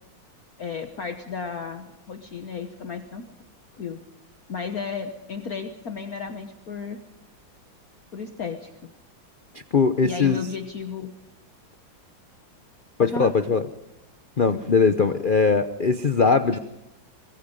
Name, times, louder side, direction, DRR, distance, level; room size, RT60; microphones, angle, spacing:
voice 1, 0.6-3.2 3.8-4.0 4.5-7.0 8.1-8.7 10.0-11.1 13.0-13.3 15.0-15.1 16.5-16.6, left 5 dB, 50° left, 6 dB, 1.5 m, -33 dB
voice 2, 9.7-10.4 13.0-13.6 14.4-16.6, left 5 dB, 90° left, 10 dB, 0.4 m, -20 dB
23.5 x 21.0 x 5.4 m, 0.91 s
omnidirectional pair, 2.2 m